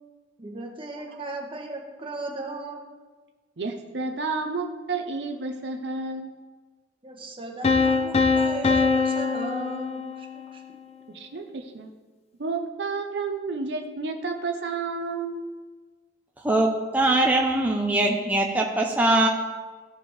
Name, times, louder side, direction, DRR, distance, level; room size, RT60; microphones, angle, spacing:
voice 1, 0.4-2.8 7.0-10.6, right 2 dB, 30° right, 0 dB, 1.3 m, -36 dB
voice 2, 3.6-6.4 11.1-11.9 12.4-15.5, right 4 dB, 70° right, 4 dB, 0.7 m, -31 dB
sound 1, 7.6-10.5, left 4 dB, 35° left, 0.6 m, -23 dB
voice 3, 16.4-19.3, right 2 dB, 10° right, 0 dB, 0.6 m, -22 dB
15.0 x 5.1 x 3.3 m, 1.3 s
head